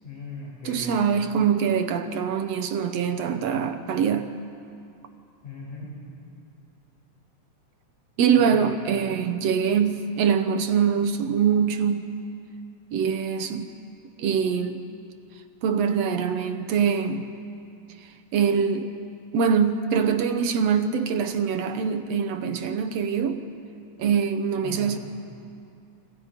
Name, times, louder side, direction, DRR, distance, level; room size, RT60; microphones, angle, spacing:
voice 1, 0.0-0.9 5.4-5.9 8.3-8.8 24.6-24.9, left 2 dB, 70° left, -7 dB, 9.6 m, -38 dB
voice 2, 0.7-4.3 8.2-12.1 12.9-13.7 14.2-14.9 15.6-17.3 18.3-18.9 19.3-23.4 24.0-25.0, right 7 dB, 65° right, 8 dB, 1.8 m, -23 dB
29.5 x 25.5 x 5.2 m, 2.5 s
omnidirectional pair, 3.6 m